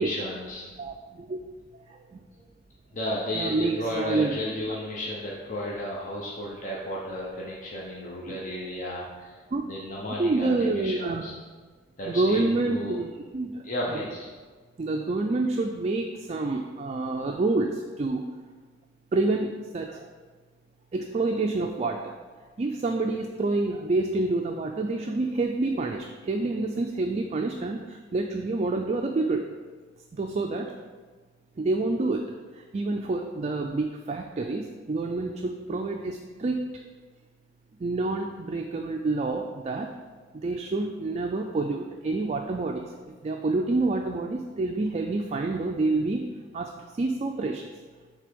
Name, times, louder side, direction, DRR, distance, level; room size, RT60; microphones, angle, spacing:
voice 1, 0.0-0.6 2.9-9.4 9.6-11.3 12.0-13.0 13.6-14.3, left 1 dB, 45° left, -4 dB, 0.8 m, -33 dB
voice 2, 0.8-1.4 1.9-2.2 3.3-4.4 8.3-8.4 9.5-9.6 10.2-11.2 12.1-13.6 13.9-14.0 14.8-18.2 19.1-20.1 20.9-22.1 22.6-29.4 30.1-30.7 31.6-32.2 32.7-36.6 37.8-39.9 40.3-42.8 43.2-46.2 46.5-46.7 47.0-47.7, right 3 dB, 35° right, 2 dB, 0.3 m, -28 dB
6.5 x 3.4 x 5.2 m, 1.5 s
head